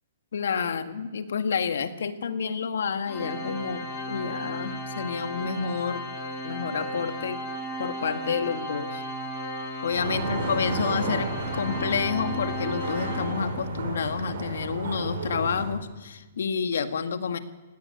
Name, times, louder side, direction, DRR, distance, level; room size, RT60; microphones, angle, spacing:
voice 1, 0.3-6.1 6.4-7.5 7.8-9.0 9.8-17.4, left 6 dB, 70° left, 8 dB, 1.8 m, -29 dB
Organ, 3.1-13.8, equal, 20° left, 4.3 m, -35 dB
sound 1, 9.9-15.7, right 2 dB, 60° right, 6.9 m, -32 dB
17.5 x 17.5 x 9.5 m, 1.2 s
hypercardioid pair, 165°, 0 cm